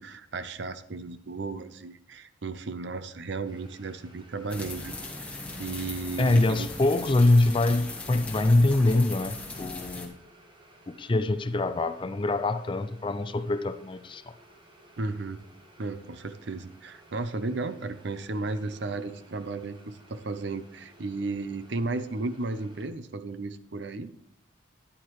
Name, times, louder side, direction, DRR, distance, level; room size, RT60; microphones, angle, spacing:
voice 1, 0.0-5.3 5.6-6.7 15.0-15.4 15.8-24.1, right 3 dB, 55° right, 12 dB, 0.6 m, -34 dB
sound 1, 3.4-22.9, right 1 dB, 25° right, 1.3 m, -56 dB
sound 2, 4.5-10.1, left 2 dB, 5° left, 1.3 m, -39 dB
voice 2, 6.2-10.2 10.9-14.2, left 2 dB, 25° left, 11 dB, 0.4 m, -24 dB
13.0 x 10.0 x 3.1 m, 0.75 s
head